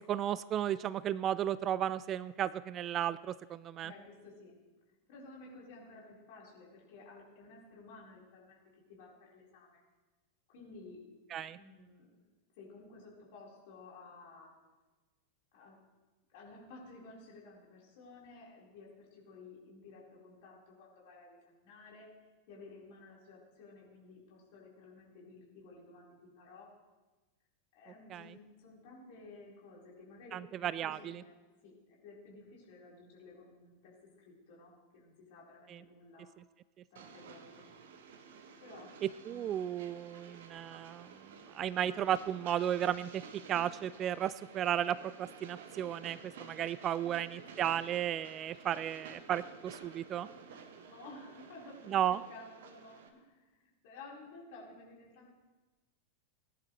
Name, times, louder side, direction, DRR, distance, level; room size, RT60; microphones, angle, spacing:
voice 1, 0.1-3.9 11.3-11.6 28.1-28.3 30.3-31.2 35.7-35.8 39.3-41.1 41.5-43.2 43.5-50.3 51.9-52.2, right 10 dB, 30° right, 17 dB, 0.3 m, -34 dB
voice 2, 3.8-4.6 5.1-8.6 8.9-9.8 10.5-11.0 11.5-12.2 12.6-14.5 15.5-15.8 16.3-22.1 22.5-26.7 27.7-31.3 31.6-36.3 36.9-37.7 38.6-38.9 39.3-39.5 47.0-47.5 50.4-55.3, left 3 dB, 50° left, -4 dB, 4.5 m, -54 dB
Train, 37.0-53.1, right 5 dB, 55° right, 1.3 m, -52 dB
19.5 x 10.5 x 3.3 m, 1.2 s
figure-of-eight pair, 90°, 0 cm